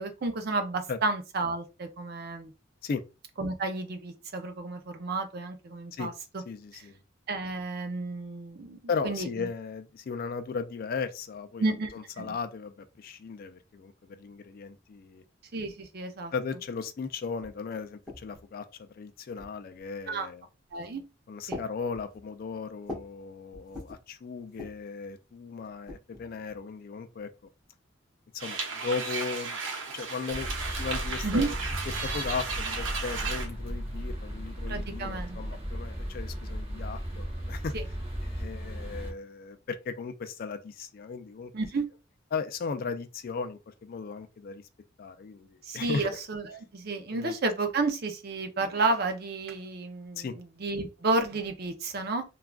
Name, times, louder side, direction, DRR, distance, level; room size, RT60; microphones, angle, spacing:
voice 1, 0.0-2.5 3.4-6.4 6.7-6.8 7.3-8.8 9.0-9.5 11.6-12.4 15.5-16.3 20.1-20.3 20.7-21.0 21.5-21.6 31.2-31.5 34.7-35.4 37.7-37.8 41.5-41.9 45.6-52.2, right 3 dB, 50° right, 0.5 m, -31 dB
voice 2, 6.5-7.0 8.9-15.2 16.3-20.5 21.3-27.3 28.3-31.5 32.0-37.7 38.2-41.5 42.3-44.6 45.0-46.1 47.1-47.3 50.2-50.4, left 5 dB, 45° left, 0.3 m, -36 dB
sound 1, 17.4-18.5 19.3-19.8 20.7-21.0 21.5-23.2 23.5-24.1 24.5-24.9 25.6-26.6, left 1 dB, 5° right, 1.3 m, -44 dB
sound 2, 28.4-33.5, right 4 dB, 75° right, 0.9 m, -34 dB
sound 3, 30.3-39.1, equal, 30° right, 0.9 m, -36 dB
3.5 x 2.3 x 2.3 m
head